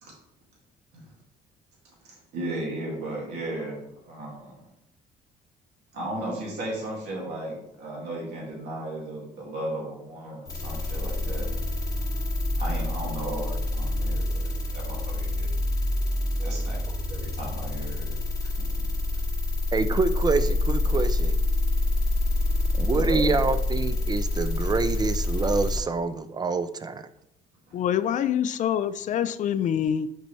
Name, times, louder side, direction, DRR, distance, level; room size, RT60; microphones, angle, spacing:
voice 1, 2.0-4.7 5.9-11.5 12.6-15.5 16.4-16.8 17.1-18.1 18.4-18.9 22.9-23.4 27.7-27.8, right 1 dB, 75° right, 2.2 m, -35 dB
sound 1, 10.5-25.8, left 2 dB, 20° left, 2.4 m, -27 dB
voice 2, 19.7-21.4 22.8-27.0, right 4 dB, 25° right, 0.4 m, -26 dB
voice 3, 27.7-30.1, left 9 dB, 45° left, 0.4 m, -25 dB
6.6 x 4.6 x 3.2 m
cardioid pair, 110°, 17 cm